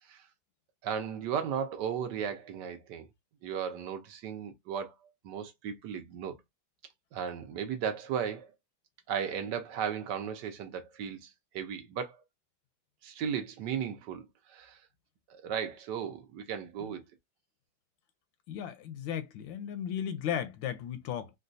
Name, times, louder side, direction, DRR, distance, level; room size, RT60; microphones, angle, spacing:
voice 1, 0.8-3.1 3.4-4.9 5.2-6.4 7.1-8.5 9.1-12.2 13.0-14.8 15.3-17.0, right 8 dB, 70° right, 1.2 m, -35 dB
voice 2, 18.5-21.3, left 9 dB, 80° left, 1.3 m, -35 dB
3.9 x 2.3 x 2.5 m
omnidirectional pair, 2.1 m